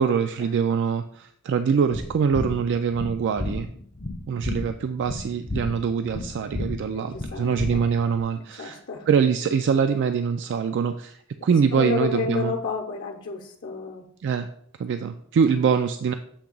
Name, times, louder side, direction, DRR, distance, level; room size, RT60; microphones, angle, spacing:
voice 1, 0.0-3.7 4.3-8.8 9.1-12.5 14.2-14.5 14.8-16.1, right 6 dB, 55° right, 9 dB, 0.3 m, -24 dB
sound 1, 1.9-8.2, left 2 dB, 25° left, 0.5 m, -33 dB
voice 2, 6.9-7.8 8.3-9.1 11.7-14.1, left 4 dB, 60° left, 1 dB, 0.8 m, -31 dB
7.2 x 2.8 x 5.3 m, 0.64 s
head